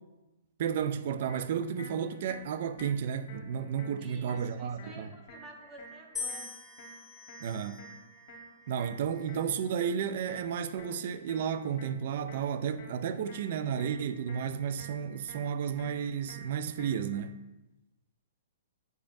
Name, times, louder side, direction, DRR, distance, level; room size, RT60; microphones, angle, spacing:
voice 1, 0.6-5.1 7.4-7.8 8.7-17.3, right 8 dB, 50° right, 0.3 m, -32 dB
sound 1, 1.3-17.3, equal, 50° left, 1.1 m, -52 dB
voice 2, 4.0-6.5, right 2 dB, 20° right, 0.7 m, -51 dB
sound 2, 6.1-8.4 9.2-9.7, left 5 dB, 5° left, 1.0 m, -43 dB
7.8 x 5.0 x 2.5 m
figure-of-eight pair, 115°, 0 cm